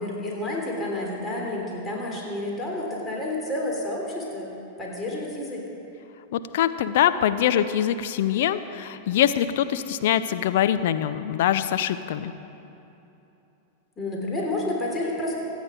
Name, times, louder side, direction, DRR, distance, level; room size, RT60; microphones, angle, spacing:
voice 1, 0.0-4.5 4.8-5.6 14.0-15.4, left 1 dB, 15° left, -2 dB, 3.4 m, -30 dB
voice 2, 6.3-12.3, left 10 dB, 55° left, 11 dB, 0.7 m, -23 dB
24.5 x 9.4 x 5.0 m, 2.9 s
figure-of-eight pair, 90°, 0 cm